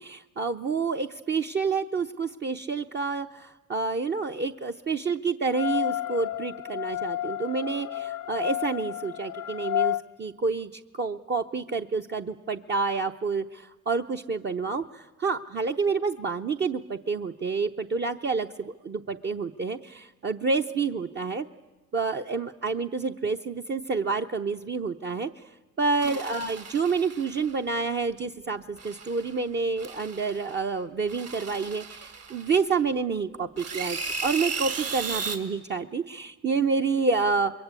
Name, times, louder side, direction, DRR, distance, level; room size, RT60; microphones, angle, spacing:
voice 1, 0.0-21.4 21.9-25.4 25.8-37.5, right 4 dB, 35° right, 4 dB, 0.8 m, -28 dB
sound 1, 5.5-10.0, left 13 dB, 75° left, 0.7 m, -31 dB
sound 2, 26.0-27.6 28.8-29.4 29.8-30.6 31.1-32.8 33.6-35.4, right 4 dB, 55° right, 3.1 m, -35 dB
26.5 x 22.5 x 8.3 m, 1.2 s
cardioid pair, 90°, 30 cm